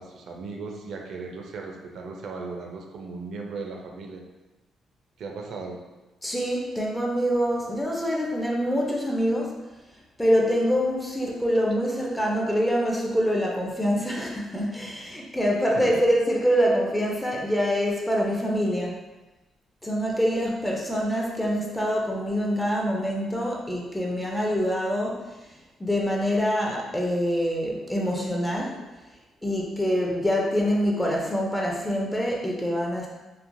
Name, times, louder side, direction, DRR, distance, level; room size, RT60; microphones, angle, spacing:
voice 1, 0.0-4.2 5.2-5.8 15.7-16.0, right 4 dB, 70° right, 1 dB, 0.4 m, -37 dB
voice 2, 6.2-9.6 10.2-19.0 19.8-28.8 29.4-33.1, equal, 10° left, -2 dB, 0.4 m, -25 dB
3.0 x 2.1 x 2.5 m, 1.1 s
cardioid pair, 90°, 0 cm